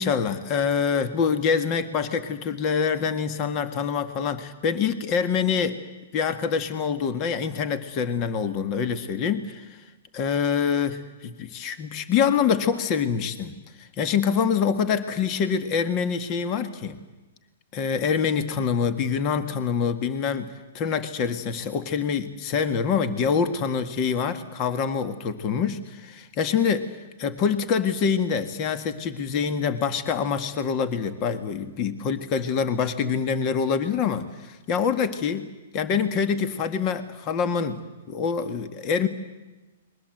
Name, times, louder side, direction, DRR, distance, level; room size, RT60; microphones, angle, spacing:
voice 1, 0.0-5.8 6.1-9.8 10.1-17.0 17.7-35.5 35.7-37.8 38.1-39.1, left 6 dB, 35° left, 10 dB, 1.8 m, -25 dB
29.5 x 22.0 x 7.9 m, 1.1 s
hypercardioid pair, 135°, 0 cm